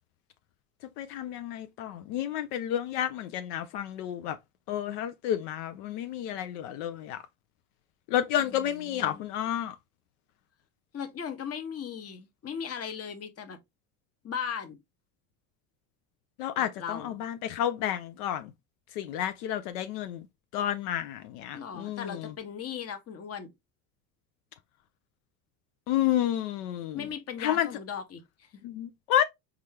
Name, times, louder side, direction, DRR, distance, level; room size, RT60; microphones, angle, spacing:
voice 1, 1.0-4.4 4.7-7.2 8.1-9.8 16.4-18.5 18.9-20.3 20.5-22.3 25.9-27.0 27.4-27.7 28.6-29.2, left 11 dB, 75° left, 0.5 m, -30 dB
voice 2, 8.4-9.2 10.9-13.6 14.2-14.8 16.6-17.2 21.5-23.5 26.9-28.5, left 7 dB, 30° left, 0.9 m, -38 dB
4.1 x 2.4 x 3.2 m
hypercardioid pair, 75°, 48 cm